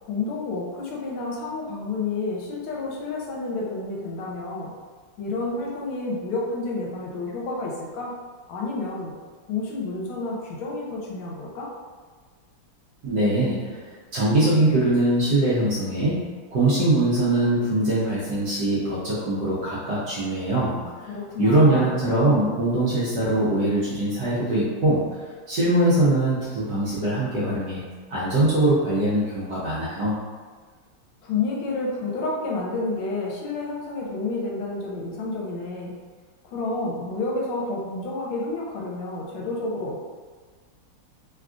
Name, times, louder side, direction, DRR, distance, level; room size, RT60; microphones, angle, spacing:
voice 1, 0.0-4.7 5.2-8.1 8.5-9.1 9.5-11.7 21.1-21.9 31.2-36.0 36.4-40.0, left 3 dB, 80° left, -3 dB, 1.5 m, -30 dB
voice 2, 13.0-13.8 14.1-16.2 16.5-20.8 21.4-25.0 25.5-27.8 28.1-30.2, right 1 dB, 65° right, -9 dB, 1.0 m, -22 dB
3.5 x 2.3 x 2.4 m, 1.5 s
omnidirectional pair, 2.3 m